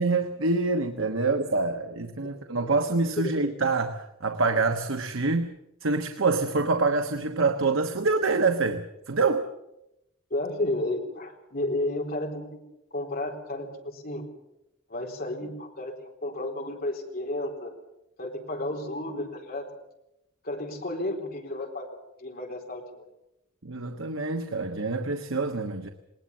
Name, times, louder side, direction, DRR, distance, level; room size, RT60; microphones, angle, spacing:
voice 1, 0.0-9.5 23.6-25.9, right 3 dB, 80° right, 6 dB, 1.2 m, -26 dB
voice 2, 10.3-12.6 12.9-14.3 14.9-17.7 18.2-19.7 20.4-21.9 22.2-23.0, left 1 dB, 45° left, 2 dB, 4.1 m, -32 dB
20.0 x 19.5 x 7.3 m, 0.88 s
head